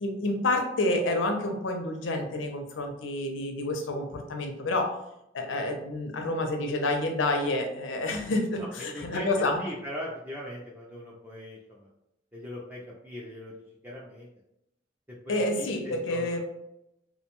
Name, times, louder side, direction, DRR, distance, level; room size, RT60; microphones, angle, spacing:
voice 1, 0.0-4.9 5.3-9.6 15.3-16.4, left 2 dB, 85° left, 4 dB, 0.5 m, -29 dB
voice 2, 8.6-11.9 12.3-13.5 13.8-14.3 15.1-16.4, left 1 dB, 10° right, -5 dB, 0.3 m, -40 dB
2.5 x 2.2 x 2.9 m, 0.84 s
head